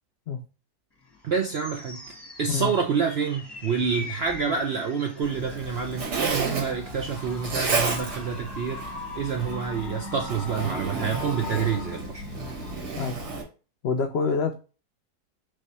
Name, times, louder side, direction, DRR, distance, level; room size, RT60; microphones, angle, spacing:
sound 1, 1.0-13.4, left 3 dB, 15° left, 1.2 m, -42 dB
voice 1, 1.2-2.0 2.4-8.8 9.1-12.2, right 6 dB, 70° right, 0.6 m, -28 dB
Zipper (clothing), 5.2-13.4, right 3 dB, 85° right, 2.0 m, -32 dB
voice 2, 13.8-14.5, left 5 dB, 85° left, 0.5 m, -26 dB
3.4 x 3.3 x 4.0 m
omnidirectional pair, 1.7 m